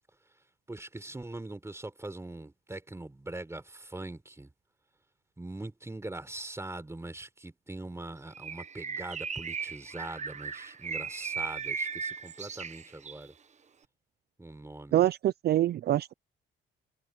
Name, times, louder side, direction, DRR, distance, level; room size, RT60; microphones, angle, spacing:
voice 1, 0.7-4.5 5.4-13.3 14.4-15.0, right 2 dB, 15° right, 4.1 m, -42 dB
Bird, 8.3-13.3, right 6 dB, 35° right, 0.9 m, -37 dB
voice 2, 14.9-16.1, right 13 dB, 55° right, 0.4 m, -25 dB
cardioid pair, 90°, 20 cm